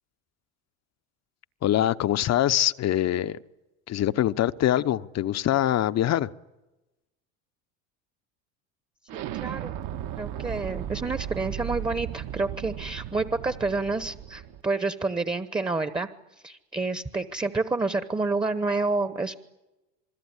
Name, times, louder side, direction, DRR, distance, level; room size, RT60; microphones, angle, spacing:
voice 1, 1.6-3.4 3.9-6.3, left 12 dB, 40° left, 0.9 m, -24 dB
voice 2, 9.1-9.8 10.2-16.1 16.4-19.3, right 3 dB, 10° right, 1.2 m, -29 dB
Explosion, 9.1-14.6, right 10 dB, 50° right, 1.5 m, -36 dB
27.5 x 21.0 x 9.8 m
supercardioid pair, 105°, 41 cm